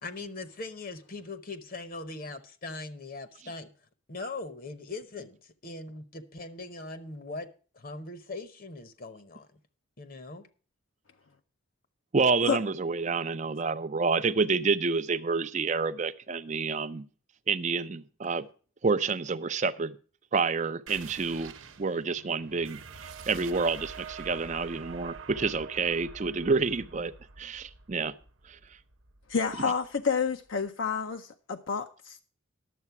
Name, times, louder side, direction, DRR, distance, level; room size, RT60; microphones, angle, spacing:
voice 1, 0.0-3.7 4.1-7.5 7.7-9.5 10.0-10.5, left 3 dB, 40° left, 0.9 m, -40 dB
voice 2, 12.1-17.1 17.5-18.5 18.8-20.0 20.3-27.1 27.4-28.1 28.5-28.6, right 4 dB, 35° right, 0.4 m, -28 dB
sound 1, 20.9-30.1, right 5 dB, 65° right, 0.9 m, -46 dB
voice 3, 29.3-32.2, left 5 dB, 65° left, 0.6 m, -29 dB
11.0 x 7.4 x 5.8 m
head